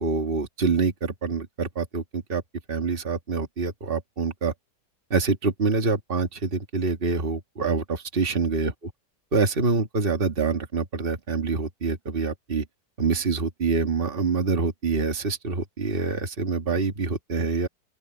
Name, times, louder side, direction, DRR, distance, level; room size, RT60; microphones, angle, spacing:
voice 1, 0.0-2.4 2.7-4.5 5.1-8.9 9.3-12.6 13.0-17.7, right 4 dB, 35° right, 2.1 m, -26 dB
open air
omnidirectional pair, 1.8 m